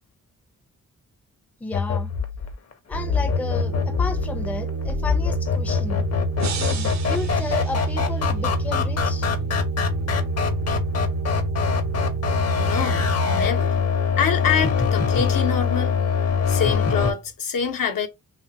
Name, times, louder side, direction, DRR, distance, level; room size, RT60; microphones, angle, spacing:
voice 1, 1.6-2.1 2.9-6.0 6.6-9.3, left 2 dB, 5° left, 0.4 m, -33 dB
sound 1, 1.7-17.1, left 6 dB, 50° left, 0.6 m, -24 dB
sound 2, 2.9-13.5, right 5 dB, 85° right, 0.8 m, -29 dB
sound 3, 6.4-8.5, right 7 dB, 55° right, 0.5 m, -36 dB
voice 2, 12.6-13.7 14.2-15.9 16.5-18.1, left 7 dB, 85° left, 0.7 m, -25 dB
2.8 x 2.3 x 2.8 m
wide cardioid pair, 95°, 33 cm